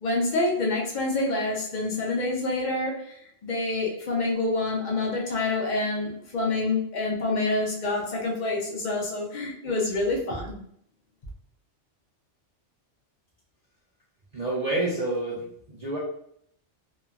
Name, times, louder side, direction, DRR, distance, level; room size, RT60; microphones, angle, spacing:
voice 1, 0.0-10.6, left 2 dB, 50° left, -1 dB, 0.6 m, -27 dB
voice 2, 14.3-16.0, right 2 dB, 40° right, -8 dB, 0.6 m, -28 dB
3.0 x 2.1 x 2.4 m, 0.66 s
omnidirectional pair, 1.2 m